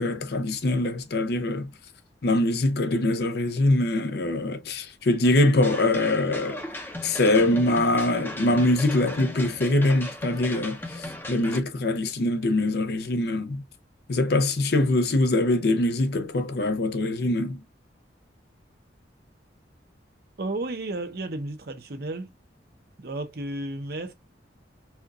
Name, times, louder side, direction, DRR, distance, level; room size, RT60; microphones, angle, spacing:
voice 1, 0.0-1.7 2.2-6.6 7.0-10.8 11.3-13.6 14.1-17.6, left 2 dB, 60° left, 0.6 m, -23 dB
sound 1, 5.6-11.6, left 1 dB, 10° left, 0.7 m, -37 dB
voice 2, 20.4-22.3 23.0-24.1, right 2 dB, 55° right, 0.8 m, -33 dB
4.3 x 2.4 x 2.4 m
head